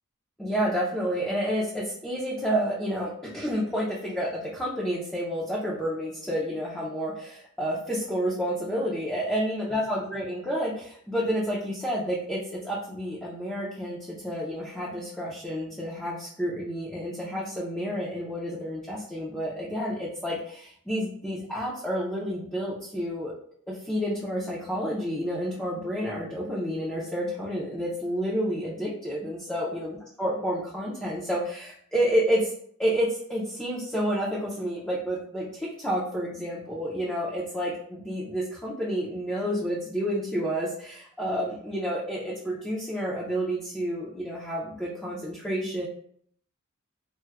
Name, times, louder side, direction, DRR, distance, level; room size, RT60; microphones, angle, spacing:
voice 1, 0.4-23.3 23.7-32.5 32.8-45.9, equal, 5° left, -6 dB, 0.4 m, -30 dB
4.3 x 2.1 x 2.3 m, 0.62 s
head